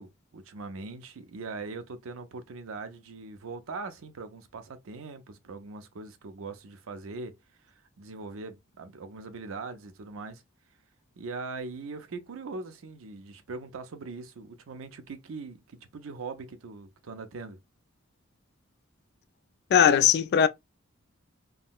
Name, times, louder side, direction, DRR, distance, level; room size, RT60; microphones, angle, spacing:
voice 1, 0.0-7.4 7.6-10.4 11.2-17.6, right 3 dB, 70° right, 0.5 m, -41 dB
voice 2, 19.7-20.5, left 8 dB, 50° left, 0.3 m, -19 dB
3.6 x 2.0 x 2.2 m
head